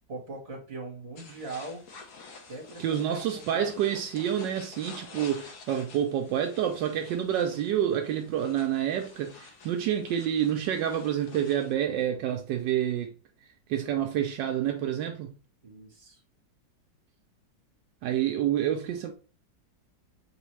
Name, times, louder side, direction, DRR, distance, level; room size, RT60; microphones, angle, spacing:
voice 1, 0.1-1.8 2.5-3.7 15.6-16.2, right 2 dB, 35° right, 1.7 m, -41 dB
sound 1, 1.2-11.7, left 4 dB, 55° left, 1.2 m, -49 dB
voice 2, 2.8-13.1 13.7-15.3 18.0-19.1, right 10 dB, 80° right, 1.2 m, -28 dB
4.0 x 3.7 x 3.1 m
omnidirectional pair, 2.0 m